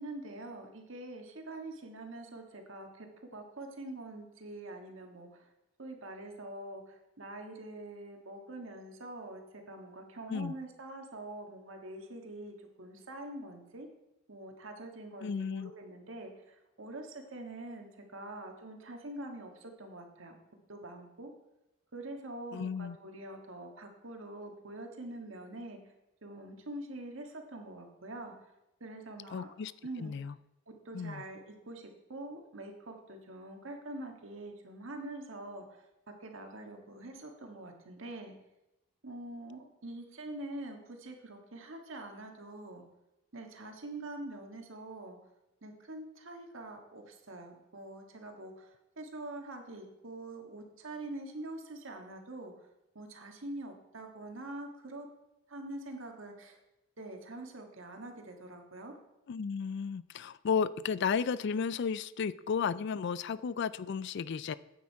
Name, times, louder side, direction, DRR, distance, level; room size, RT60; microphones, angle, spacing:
voice 1, 0.0-5.5 5.8-13.9 14.3-20.4 20.7-21.3 21.9-25.8 26.2-28.3 28.8-29.5 29.8-30.1 30.8-35.9 36.2-38.3 39.0-42.8 43.3-45.2 45.6-52.5 52.9-55.1 55.5-56.6 57.0-58.9, right 2 dB, 65° right, 3 dB, 1.6 m, -45 dB
voice 2, 15.2-15.7 22.5-23.0 29.3-29.7 30.0-30.3 30.9-31.2 59.3-64.5, left 6 dB, 55° left, 18 dB, 0.3 m, -33 dB
9.4 x 8.7 x 4.6 m, 0.92 s
head